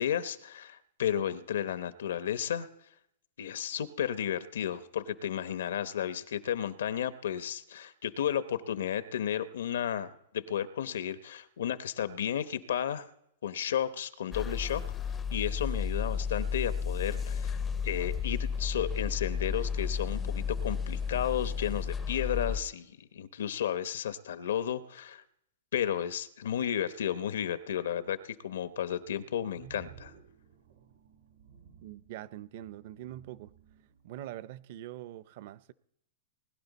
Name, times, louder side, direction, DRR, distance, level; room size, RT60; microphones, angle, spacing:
voice 1, 0.0-2.7 3.4-13.1 13.4-14.8 15.3-25.2 25.7-30.1, left 9 dB, 85° left, 0.8 m, -33 dB
sound 1, 14.3-22.6, left 6 dB, 10° left, 0.4 m, -33 dB
sound 2, 29.0-34.3, right 8 dB, 85° right, 2.8 m, -56 dB
voice 2, 31.8-33.5 34.0-35.7, right 13 dB, 45° right, 0.5 m, -43 dB
20.0 x 11.5 x 4.1 m
supercardioid pair, 165°, 0 cm